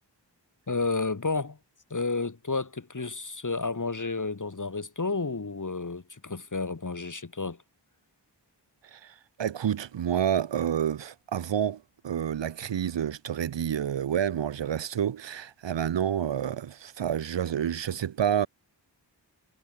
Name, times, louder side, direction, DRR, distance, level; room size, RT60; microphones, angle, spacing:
voice 1, 0.7-1.6 1.9-7.6, left 3 dB, 45° left, 2.0 m, -31 dB
voice 2, 8.9-18.5, right 9 dB, 80° right, 0.7 m, -29 dB
wide cardioid pair, 65°, 43 cm